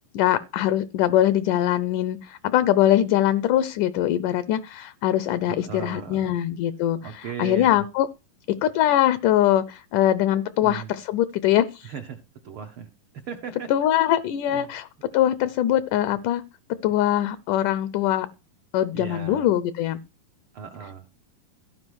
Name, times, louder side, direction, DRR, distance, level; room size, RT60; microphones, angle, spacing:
voice 1, 0.1-8.1 8.6-11.9 13.7-14.9 15.1-16.4 16.8-18.3 18.7-20.0, left 12 dB, 75° left, 2.0 m, -22 dB
voice 2, 5.5-6.4 7.0-7.8 10.6-10.9 11.8-12.2 12.4-12.9 13.2-13.7 14.5-14.7 18.9-19.5 20.5-21.1, right 7 dB, 75° right, 1.2 m, -36 dB
15.0 x 5.0 x 6.3 m
omnidirectional pair, 4.0 m